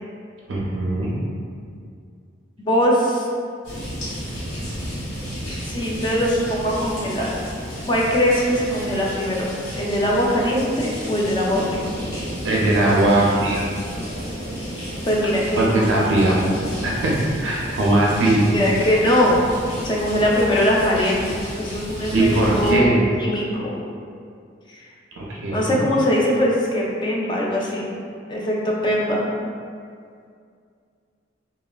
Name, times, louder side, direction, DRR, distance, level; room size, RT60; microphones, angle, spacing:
voice 1, 0.5-1.1 12.4-13.6 15.6-16.4 16.8-17.1 17.4-18.6 22.1-23.0 25.2-25.8, right 1 dB, 75° right, -4 dB, 0.4 m, -19 dB
voice 2, 2.6-3.3 5.7-7.4 7.9-9.5 9.8-11.9 15.1-15.9 18.5-19.4 19.8-21.2 21.6-23.8 24.7-24.8 25.5-27.9 28.3-29.3, equal, 25° left, -3 dB, 0.3 m, -21 dB
sound 1, 3.6-22.7, equal, 70° left, 1.3 m, -32 dB
3.2 x 2.2 x 2.2 m, 2.3 s
head